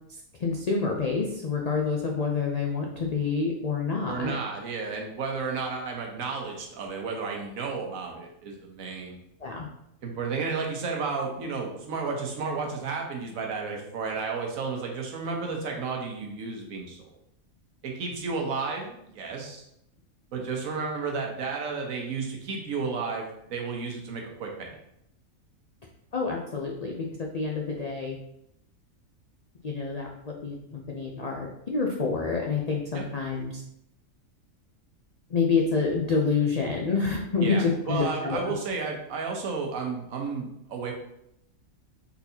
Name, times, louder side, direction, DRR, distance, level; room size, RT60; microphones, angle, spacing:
voice 1, 0.1-4.4 9.4-9.7 26.1-27.1 27.3-28.2 29.6-33.6 35.3-38.5, left 4 dB, 85° left, -1 dB, 0.3 m, -28 dB
voice 2, 4.1-9.2 10.0-17.0 17.8-19.7 20.3-24.7 32.9-33.1 37.4-40.9, right 4 dB, 75° right, 1 dB, 1.3 m, -32 dB
4.6 x 4.1 x 2.7 m, 0.78 s
omnidirectional pair, 1.5 m